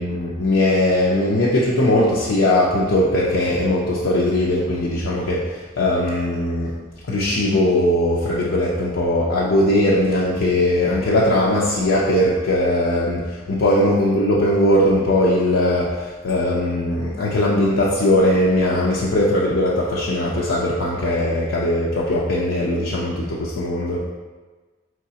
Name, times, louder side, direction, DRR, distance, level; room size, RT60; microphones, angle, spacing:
voice 1, 0.0-6.7 7.1-24.0, left 1 dB, 85° left, -6 dB, 0.6 m, -19 dB
5.1 x 3.1 x 2.8 m, 1.3 s
head